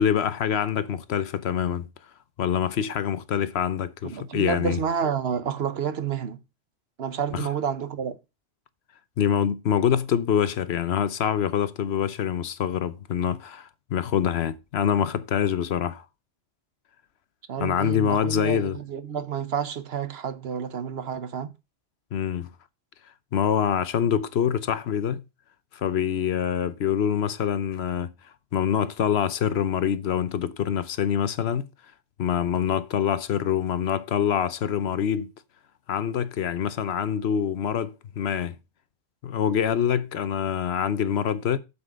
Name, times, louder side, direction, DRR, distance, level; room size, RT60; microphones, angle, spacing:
voice 1, 0.0-1.9 2.4-4.8 7.3-7.5 9.2-16.0 17.6-18.8 22.1-22.5 23.3-25.2 25.7-28.1 28.5-31.7 32.2-35.3 35.9-38.5 39.2-41.6, left 8 dB, 75° left, 1.0 m, -25 dB
voice 2, 4.0-6.4 7.0-8.2 17.5-21.5, right 7 dB, 70° right, 1.1 m, -29 dB
7.2 x 6.7 x 5.2 m
omnidirectional pair, 1.1 m